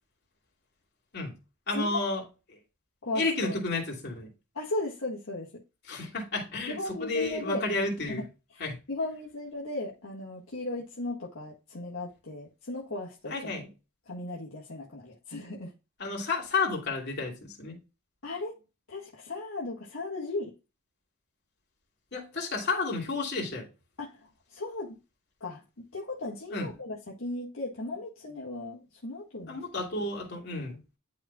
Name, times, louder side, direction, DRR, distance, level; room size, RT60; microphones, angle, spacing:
voice 1, 1.7-2.2 2.5-2.6 3.1-4.3 5.9-8.2 8.6-8.8 13.3-13.7 16.0-17.8 22.1-23.7 26.5-26.7 29.5-30.8, left 3 dB, 45° left, 2.8 m, -31 dB
voice 2, 3.0-3.6 4.5-5.6 6.7-7.6 8.1-8.2 8.5-13.5 14.1-15.7 18.2-18.5 18.9-20.5 24.0-25.0 25.4-29.6, left 2 dB, 65° left, 1.7 m, -36 dB
11.5 x 4.2 x 2.3 m
head